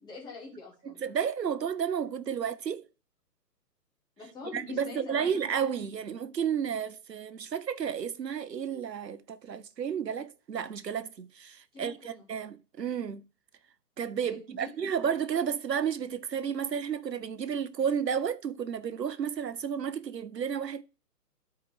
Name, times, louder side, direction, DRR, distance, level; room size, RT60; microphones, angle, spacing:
voice 1, 0.0-1.0 4.2-5.4 11.7-12.3 14.2-14.7, left 3 dB, 10° left, 2.0 m, -44 dB
voice 2, 0.8-2.8 4.5-13.2 14.0-20.8, right 7 dB, 90° right, 0.7 m, -32 dB
12.0 x 4.6 x 3.4 m
figure-of-eight pair, 130°, 48 cm